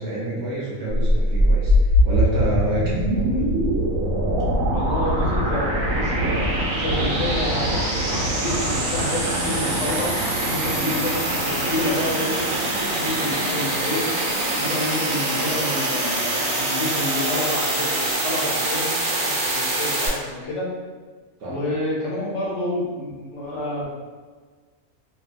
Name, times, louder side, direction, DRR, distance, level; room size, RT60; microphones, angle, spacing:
voice 1, 0.0-3.4 21.4-21.6, right 1 dB, 60° right, -6 dB, 0.9 m, -28 dB
sound 1, 0.9-20.1, right 1 dB, 90° right, 1.2 m, -23 dB
voice 2, 4.7-7.7 8.0-10.1 10.5-12.6 12.9-14.0 14.5-20.7 21.5-23.9, left 1 dB, 65° left, -5 dB, 0.9 m, -29 dB
2.5 x 2.4 x 2.4 m, 1.4 s
omnidirectional pair, 1.4 m